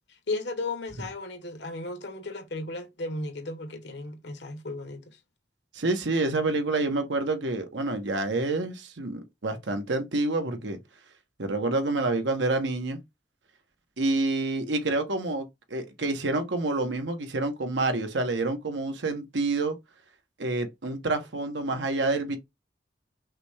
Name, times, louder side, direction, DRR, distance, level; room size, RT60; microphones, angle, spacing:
voice 1, 0.3-5.2, left 2 dB, 70° left, 1.1 m, -35 dB
voice 2, 5.7-10.8 11.4-13.0 14.0-19.7 20.4-22.4, right 2 dB, 85° right, 1.0 m, -28 dB
5.7 x 2.3 x 3.3 m
head